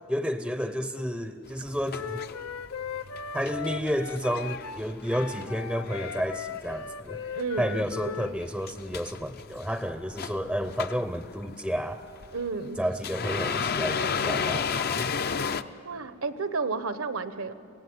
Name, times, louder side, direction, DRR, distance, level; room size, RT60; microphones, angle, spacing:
voice 1, 0.1-2.2 3.3-7.2 7.6-12.0 12.8-14.7 15.0-15.1, equal, ahead, 9 dB, 0.6 m, -31 dB
sound 1, 1.5-6.9 7.1-15.6, left 6 dB, 50° left, 0.6 m, -33 dB
Wind instrument woodwind instrument, 1.9-8.3, left 6 dB, 90° left, 0.7 m, -38 dB
voice 2, 7.3-7.9 8.3-8.4 12.3-12.8 15.8-17.5, right 4 dB, 75° right, 12 dB, 1.1 m, -31 dB
24.5 x 17.0 x 9.6 m, 2.5 s
head